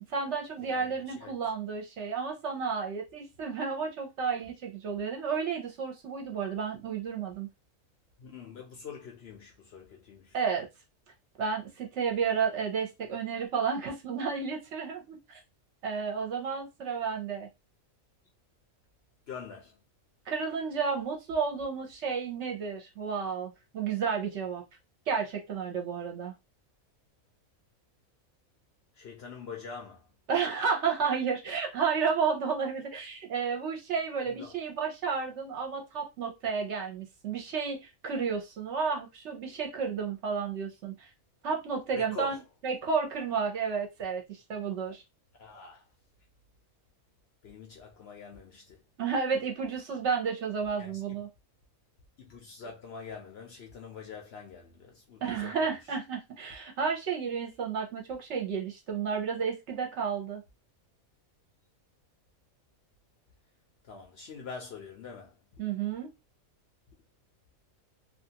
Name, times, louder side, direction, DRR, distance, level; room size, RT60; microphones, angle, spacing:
voice 1, 0.1-7.5 10.3-10.7 11.4-15.4 15.8-17.5 20.3-24.6 25.1-26.3 30.3-41.1 41.4-42.4 42.6-45.0 49.0-51.3 55.2-60.4 65.6-66.1, right 6 dB, 60° right, 0.9 m, -32 dB
voice 2, 0.6-1.3 8.2-10.4 19.3-19.8 28.9-30.1 34.3-34.6 41.9-42.4 45.4-45.8 47.4-48.8 50.8-51.2 52.2-55.9 63.8-65.4, left 5 dB, 60° left, 0.7 m, -45 dB
2.6 x 2.4 x 2.7 m
omnidirectional pair, 1.5 m